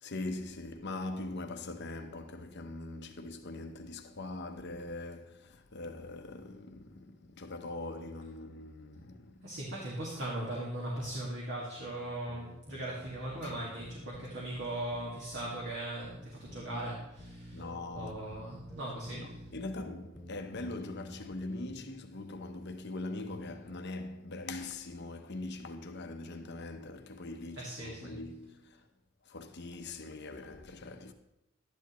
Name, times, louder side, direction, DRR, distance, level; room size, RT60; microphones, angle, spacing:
voice 1, 0.0-9.5 13.4-13.5 17.5-18.6 19.2-28.8 29.2-31.1, left 2 dB, 55° left, 0.9 m, -42 dB
voice 2, 9.4-17.6 17.9-19.4 27.6-28.2, right 1 dB, 55° right, 2.0 m, -39 dB
sound 1, 11.7-21.8, equal, 5° right, 1.8 m, -50 dB
12.0 x 10.5 x 3.1 m
head